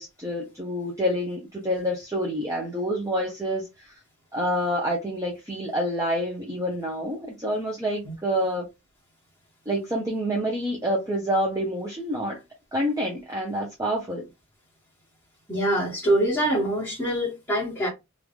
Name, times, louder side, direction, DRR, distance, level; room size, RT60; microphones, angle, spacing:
voice 1, 0.0-3.9 4.3-8.7 9.7-12.4 12.7-14.2, equal, 15° right, 0.7 m, -27 dB
voice 2, 15.5-17.9, right 1 dB, 5° left, 1.2 m, -24 dB
3.1 x 2.5 x 3.5 m
head